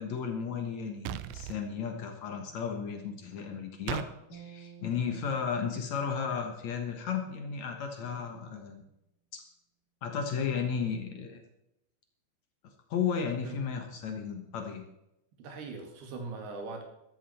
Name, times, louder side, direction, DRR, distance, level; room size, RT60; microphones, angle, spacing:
voice 1, 0.0-4.0 4.3-8.8 9.3-9.4 10.0-11.4 12.9-14.8, left 6 dB, 70° left, 4 dB, 1.7 m, -34 dB
sound 1, 1.1-1.6 3.9-4.1, right 15 dB, 85° right, 2.9 m, -36 dB
sound 2, 4.3-7.6, right 8 dB, 50° left, 5.8 m, -54 dB
voice 2, 15.4-16.8, right 3 dB, 65° right, 3 dB, 3.7 m, -41 dB
13.5 x 13.5 x 4.3 m, 0.84 s
omnidirectional pair, 5.1 m